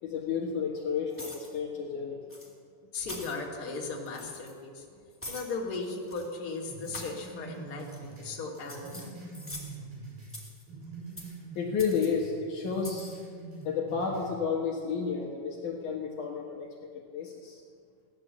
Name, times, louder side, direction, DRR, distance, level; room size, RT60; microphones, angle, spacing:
voice 1, 0.0-2.2 11.6-13.1 13.6-16.7 17.1-17.6, left 5 dB, 60° left, -1 dB, 2.7 m, -31 dB
sound 1, 1.1-1.5 2.3-2.5 3.0-3.4 4.1-4.5 5.2-5.5 6.0-6.3 6.8-7.2 7.8-8.2 8.5-9.8 10.2-10.6 11.2-11.4 11.8-12.1 12.7-13.1, left 1 dB, 5° left, 2.1 m, -44 dB
voice 2, 2.9-4.9 5.2-9.2, left 3 dB, 30° left, -3 dB, 2.5 m, -37 dB
sound 2, 6.7-10.4 10.7-12.3 12.6-14.3, right 3 dB, 75° right, 7.0 m, -44 dB
17.0 x 10.5 x 7.5 m, 2.1 s
omnidirectional pair, 4.2 m